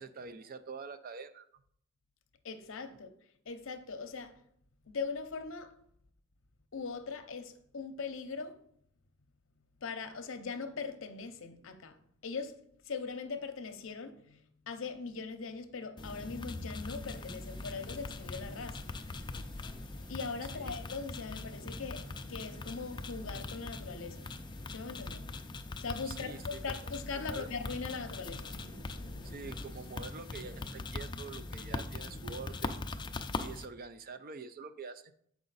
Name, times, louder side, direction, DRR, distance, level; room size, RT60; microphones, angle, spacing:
voice 1, 0.0-1.5 2.9-3.0 20.5-20.7 26.1-27.5 29.2-32.8 33.4-35.1, right 5 dB, 45° right, 0.5 m, -46 dB
voice 2, 2.4-3.1 3.5-4.4 4.9-5.7 6.7-8.6 9.8-12.0 12.2-12.6 12.8-14.4 14.7-18.9 20.1-24.3 24.7-25.3 25.8-28.5, left 4 dB, 65° left, 0.7 m, -40 dB
sound 1, 16.0-33.6, left 3 dB, 20° left, 0.4 m, -41 dB
sound 2, 16.8-30.7, right 1 dB, 80° right, 1.3 m, -59 dB
7.4 x 4.8 x 4.0 m
head